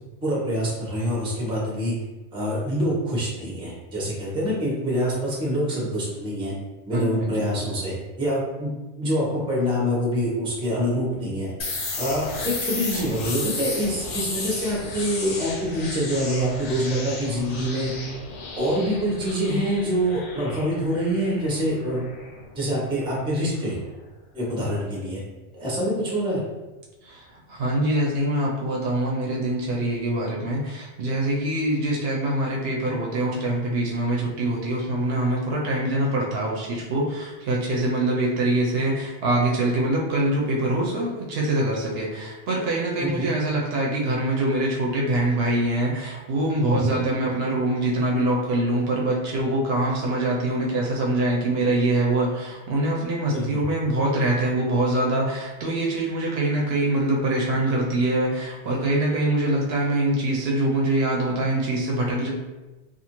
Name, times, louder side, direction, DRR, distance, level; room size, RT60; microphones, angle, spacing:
voice 1, 0.2-1.9 2.3-6.5 6.9-8.7 9.0-11.5 12.0-17.9 18.6-22.1 22.6-23.8 24.3-25.2 25.5-26.4 43.0-43.3 46.7-47.0 53.3-53.6, equal, 5° right, -4 dB, 0.5 m, -25 dB
voice 2, 6.9-7.3 27.1-62.3, right 1 dB, 65° right, -2 dB, 0.7 m, -24 dB
sound 1, 11.6-23.2, left 2 dB, 90° left, 1.0 m, -34 dB
2.5 x 2.4 x 2.9 m, 1.1 s
omnidirectional pair, 1.2 m